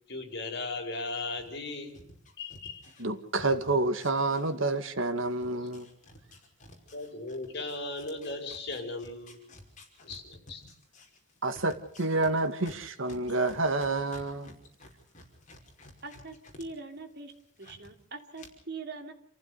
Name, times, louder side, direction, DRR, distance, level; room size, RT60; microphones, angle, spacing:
voice 1, 0.1-2.0 2.4-2.9 6.9-9.4 10.0-10.6, left 3 dB, 55° left, 5.3 m, -37 dB
sound 1, 1.3-4.9 5.2-16.7 17.0-17.9 18.3-18.5, left 1 dB, 40° left, 5.3 m, -52 dB
voice 2, 3.0-5.9 11.4-14.6, right 2 dB, 75° right, 2.1 m, -29 dB
voice 3, 16.0-17.3 17.6-19.1, right 3 dB, 55° right, 2.9 m, -42 dB
28.5 x 15.5 x 6.8 m
head